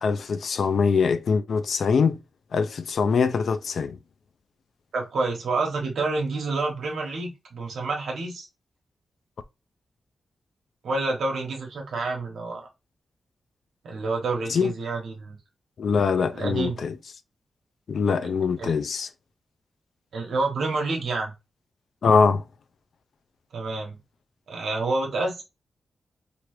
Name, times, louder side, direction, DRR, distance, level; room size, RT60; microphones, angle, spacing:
voice 1, 0.0-2.2 2.5-4.0 14.5-14.7 15.8-16.9 17.9-19.1 22.0-22.4, left 5 dB, 70° left, 0.3 m, -23 dB
voice 2, 4.9-8.5 10.8-12.7 13.8-15.4 16.3-16.8 18.2-18.3 18.6-18.7 20.1-21.3 23.5-24.0 24.5-25.4, right 3 dB, 85° right, 0.9 m, -28 dB
3.0 x 2.5 x 3.0 m
wide cardioid pair, 110°, 0 cm